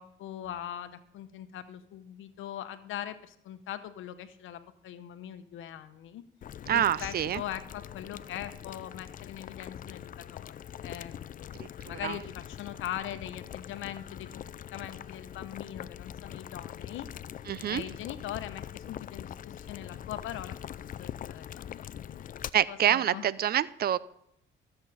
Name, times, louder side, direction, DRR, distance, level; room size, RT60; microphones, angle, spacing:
voice 1, 0.0-6.2 6.7-14.4 14.7-17.1 17.7-20.6 20.8-22.4 22.7-23.3, left 11 dB, 80° left, 11 dB, 0.9 m, -41 dB
Boiling, 6.4-22.5, left 10 dB, 45° left, 0.4 m, -43 dB
voice 2, 6.7-7.4 11.6-12.2 17.5-17.8 22.5-24.0, right 10 dB, 50° right, 19 dB, 0.5 m, -27 dB
13.0 x 7.9 x 4.1 m, 0.77 s
cardioid pair, 90°, 20 cm